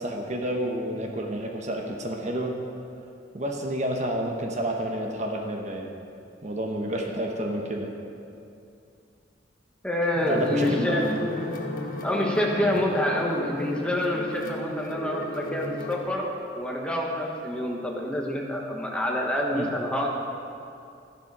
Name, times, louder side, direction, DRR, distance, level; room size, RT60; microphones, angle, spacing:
voice 1, 0.0-2.5 3.3-5.9 6.4-7.9 10.3-11.4 12.6-12.7 19.5-19.7, right 1 dB, 40° right, 1 dB, 1.1 m, -30 dB
voice 2, 9.8-11.1 12.0-20.1, left 1 dB, 5° left, -1 dB, 1.3 m, -27 dB
sound 1, 10.1-16.0, left 1 dB, 50° left, 1.3 m, -33 dB
13.0 x 11.0 x 4.8 m, 2.6 s
head